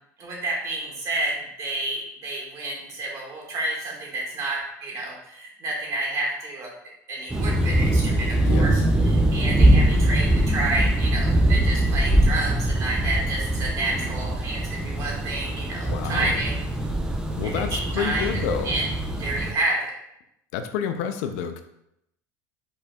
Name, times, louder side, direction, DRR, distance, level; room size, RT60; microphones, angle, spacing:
voice 1, 0.2-6.7 7.1-16.6 17.7-18.9 19.2-19.9, right 2 dB, 40° right, -2 dB, 1.8 m, -29 dB
sound 1, 7.3-19.5, right 1 dB, 10° right, 0.5 m, -22 dB
voice 2, 8.3-8.8 15.9-16.3 17.4-18.7 20.5-21.6, left 8 dB, 75° left, 8 dB, 0.5 m, -29 dB
5.2 x 4.3 x 2.3 m, 0.79 s
supercardioid pair, 135°, 9 cm